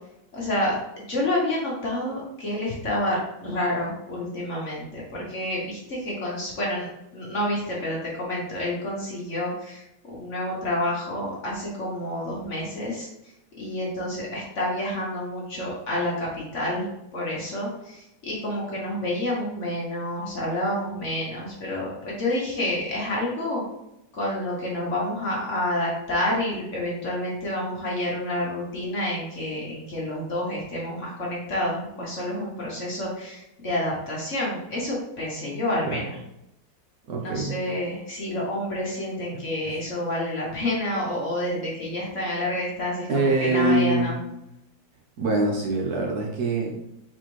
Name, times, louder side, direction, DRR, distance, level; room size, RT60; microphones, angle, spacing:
voice 1, 0.3-6.9 7.1-13.1 13.6-16.9 17.1-23.6 24.1-36.2 37.2-44.2, left 1 dB, 45° left, -4 dB, 1.2 m, -29 dB
voice 2, 37.1-37.6 39.7-39.8 43.1-44.1 45.2-46.7, right 2 dB, 60° right, -1 dB, 1.2 m, -24 dB
4.2 x 4.0 x 3.1 m, 0.84 s
omnidirectional pair, 2.0 m